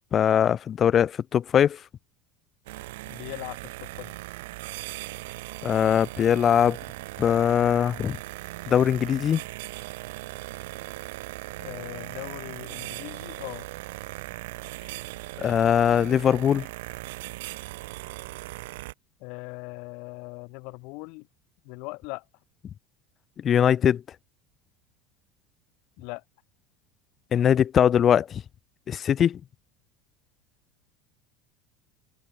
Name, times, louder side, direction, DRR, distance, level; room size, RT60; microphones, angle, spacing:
voice 1, 0.1-1.8 5.6-6.8 7.2-8.2 8.7-9.4 15.4-16.7 23.4-24.0 27.3-28.4 28.9-29.4, left 9 dB, 30° left, 0.4 m, -21 dB
sound 1, 2.7-18.9, right 20 dB, 80° right, 2.4 m, -39 dB
voice 2, 3.1-4.1 11.6-13.7 19.2-21.2 21.7-22.2 26.0-26.2, left 31 dB, 65° left, 2.1 m, -39 dB
supercardioid pair, 130°, 0 cm